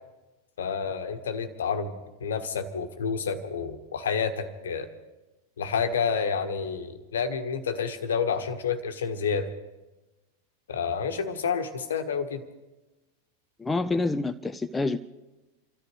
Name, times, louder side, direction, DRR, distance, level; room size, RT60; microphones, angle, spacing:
voice 1, 0.6-4.9 5.6-9.5 10.7-12.4, left 6 dB, 65° left, 7 dB, 1.3 m, -29 dB
voice 2, 13.6-15.0, left 3 dB, 10° left, 9 dB, 0.4 m, -27 dB
29.0 x 13.5 x 3.2 m, 1.1 s
figure-of-eight pair, 90°, 0 cm